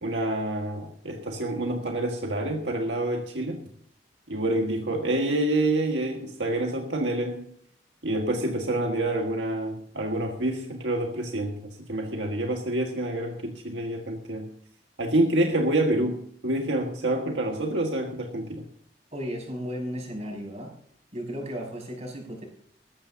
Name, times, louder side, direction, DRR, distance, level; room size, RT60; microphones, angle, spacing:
voice 1, 0.0-3.6 4.3-7.5 8.0-11.5 11.9-14.5 15.0-18.6, right 1 dB, 75° right, 2 dB, 1.7 m, -27 dB
voice 2, 19.1-20.7 21.1-22.4, equal, 40° right, 0 dB, 5.9 m, -34 dB
20.0 x 15.0 x 2.8 m, 0.62 s
head